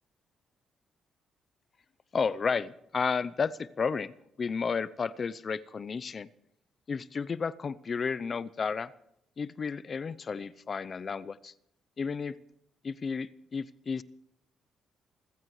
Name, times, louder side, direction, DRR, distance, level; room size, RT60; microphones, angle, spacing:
voice 1, 2.1-4.1 4.4-6.3 6.9-8.9 9.4-11.5 12.0-12.4 12.8-14.0, left 5 dB, 40° left, 16 dB, 0.6 m, -32 dB
28.0 x 15.0 x 3.2 m, 0.78 s
cardioid pair, 90°, 0 cm